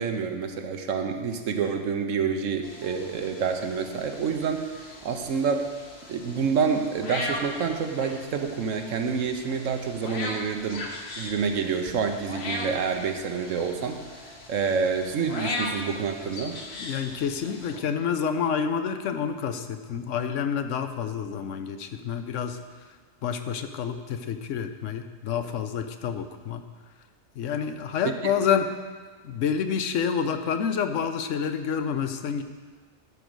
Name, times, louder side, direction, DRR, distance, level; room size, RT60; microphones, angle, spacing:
voice 1, 0.0-5.7 6.1-10.8 11.2-14.0 14.5-16.6 28.0-28.1, right 6 dB, 85° right, 6 dB, 1.2 m, -28 dB
sound 1, 2.6-17.8, left 2 dB, 55° left, 1.3 m, -38 dB
voice 2, 16.8-22.6 23.2-26.6 27.4-28.7 29.2-32.4, left 7 dB, 75° left, 8 dB, 1.0 m, -28 dB
12.5 x 5.2 x 6.3 m, 1.5 s
omnidirectional pair, 1.3 m